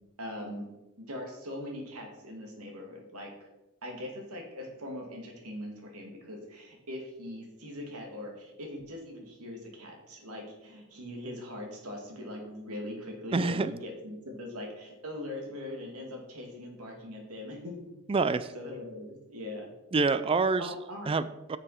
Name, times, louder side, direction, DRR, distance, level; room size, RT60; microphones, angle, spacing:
voice 1, 0.2-0.7 1.0-3.3 3.8-17.9 18.5-19.7 20.6-21.1, left 1 dB, 90° right, 1 dB, 2.6 m, -41 dB
voice 2, 13.3-13.7 18.1-18.5 19.9-20.7 21.1-21.6, right 4 dB, 25° right, 14 dB, 0.3 m, -27 dB
10.0 x 6.7 x 4.4 m, 1.0 s
head